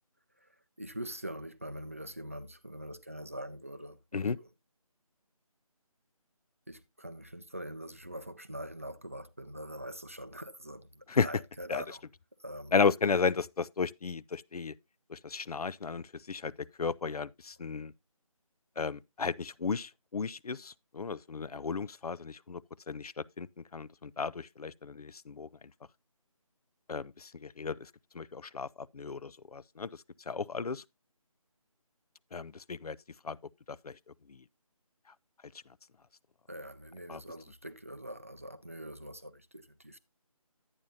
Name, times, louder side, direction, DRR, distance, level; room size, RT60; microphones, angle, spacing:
voice 1, 0.8-4.5 6.7-12.0 12.4-12.7 36.5-40.0, equal, 25° right, 0.4 m, -43 dB
voice 2, 12.7-14.7 15.1-16.5 16.8-17.9 18.8-22.6 22.9-23.5 23.7-25.5 26.9-29.9 30.3-30.8 32.3-33.0 33.2-33.4 33.7-34.0 34.3-34.4 37.1-37.2, left 5 dB, 85° left, 0.5 m, -34 dB
11.0 x 9.0 x 2.6 m
figure-of-eight pair, 170°, 19 cm